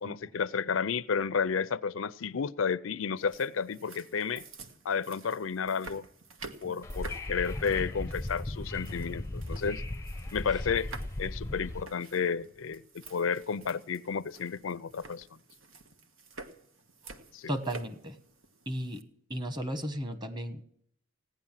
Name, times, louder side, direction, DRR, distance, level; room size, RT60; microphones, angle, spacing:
voice 1, 0.0-4.4 4.8-6.1 6.6-9.8 10.3-10.9 11.2-15.3 17.3-17.5, left 6 dB, 85° left, 0.5 m, -32 dB
sound 1, 3.2-19.0, right 3 dB, 90° right, 1.5 m, -50 dB
Wind / Subway metro underground, 6.8-11.8, left 1 dB, 15° left, 0.6 m, -37 dB
voice 2, 17.5-18.1 18.7-19.0 19.3-20.6, equal, 20° right, 1.4 m, -35 dB
17.0 x 10.0 x 7.4 m
head